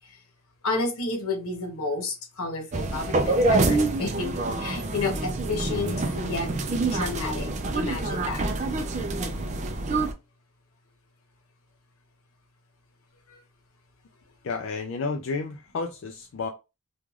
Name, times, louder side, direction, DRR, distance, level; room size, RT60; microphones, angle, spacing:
voice 1, 0.6-4.3 4.6-6.5 6.9-8.4 13.3-13.4, left 3 dB, 85° left, 0.9 m, -31 dB
sound 1, 2.7-10.1, right 2 dB, 35° right, 0.3 m, -26 dB
voice 2, 14.4-16.5, left 4 dB, 60° left, 0.3 m, -31 dB
3.1 x 2.3 x 2.3 m
head